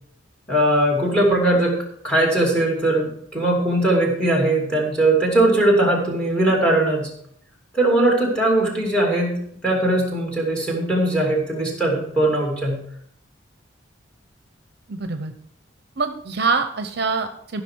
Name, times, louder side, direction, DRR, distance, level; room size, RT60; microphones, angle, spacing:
voice 1, 0.5-1.8 2.0-7.1 7.7-9.4 9.6-12.8, right 1 dB, 5° left, -1 dB, 2.6 m, -20 dB
voice 2, 14.9-15.3 16.0-17.6, right 4 dB, 55° right, 8 dB, 0.8 m, -24 dB
14.5 x 6.2 x 4.6 m, 0.68 s
head